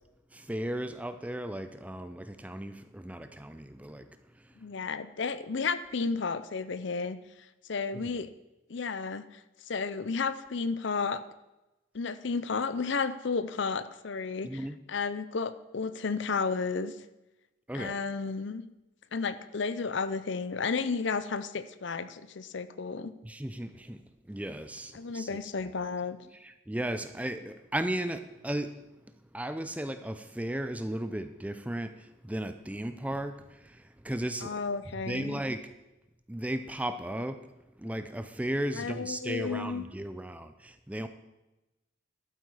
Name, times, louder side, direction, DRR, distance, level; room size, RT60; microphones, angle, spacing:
voice 1, 0.3-4.1 7.9-8.1 14.4-14.8 17.7-18.0 23.2-25.4 26.4-28.7 29.3-34.6 35.1-35.6 36.3-37.5 37.8-41.1, right 1 dB, 5° right, 10 dB, 0.4 m, -35 dB
voice 2, 4.6-7.2 7.7-8.3 8.7-11.2 11.9-17.0 17.7-18.6 19.1-23.1 24.9-26.2 34.4-35.4 38.7-39.8, left 4 dB, 60° left, 13 dB, 0.6 m, -32 dB
12.0 x 8.4 x 4.9 m, 1.0 s
head